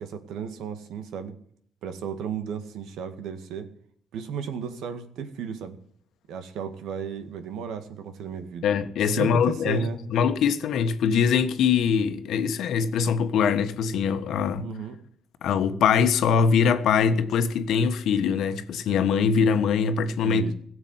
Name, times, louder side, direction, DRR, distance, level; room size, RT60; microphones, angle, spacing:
voice 1, 0.0-1.3 1.8-3.7 4.1-5.8 6.3-8.7 9.0-10.0 14.6-15.0 20.2-20.5, right 7 dB, 85° right, 1.9 m, -34 dB
voice 2, 8.6-14.7 15.4-20.5, left 6 dB, 75° left, 1.4 m, -23 dB
16.5 x 7.2 x 9.5 m
cardioid pair, 90°, 0 cm